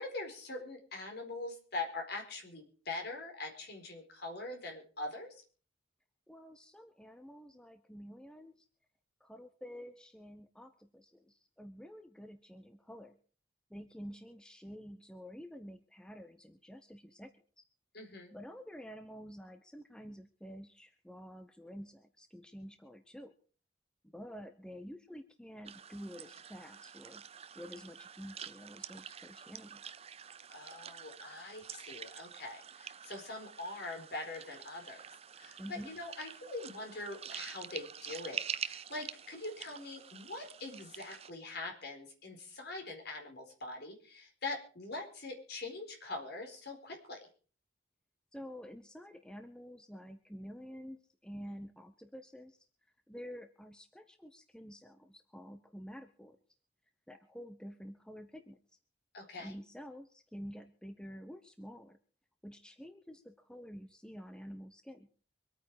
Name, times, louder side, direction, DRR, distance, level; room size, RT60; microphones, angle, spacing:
voice 1, 0.0-5.3 17.9-18.3 30.5-35.0 35.4-47.2 59.1-59.5, left 2 dB, 55° left, 3 dB, 4.4 m, -43 dB
voice 2, 6.3-8.7 9.2-13.2 13.7-17.6 18.3-23.3 24.0-27.2 27.6-29.8 35.6-35.9 48.3-52.7 53.1-56.4 57.1-58.6 59.4-62.0 62.4-65.1, equal, 5° left, 7 dB, 0.9 m, -49 dB
sound 1, 25.6-41.3, right 8 dB, 30° right, 0.6 m, -47 dB
24.5 x 9.1 x 4.8 m, 0.41 s
head